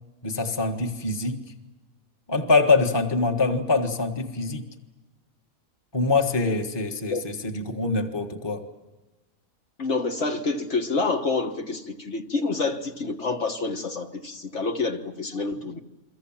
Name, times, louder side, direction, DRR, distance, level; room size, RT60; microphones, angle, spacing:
voice 1, 0.2-1.4 2.3-4.6 5.9-8.6, left 3 dB, 20° left, 1.6 m, -24 dB
voice 2, 9.8-15.8, left 3 dB, 55° left, 1.6 m, -28 dB
29.5 x 23.0 x 7.4 m
omnidirectional pair, 1.5 m